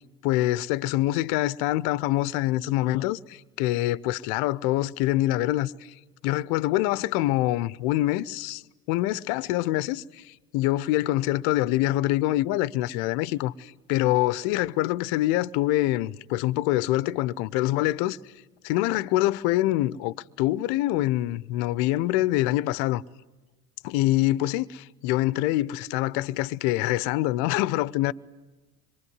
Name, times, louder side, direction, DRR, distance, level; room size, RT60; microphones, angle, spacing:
voice 1, 0.2-5.9 6.2-8.6 8.9-18.2 18.6-23.0 23.8-28.1, left 16 dB, 60° left, 0.8 m, -25 dB
26.0 x 23.0 x 9.6 m
hypercardioid pair, 75°, 45 cm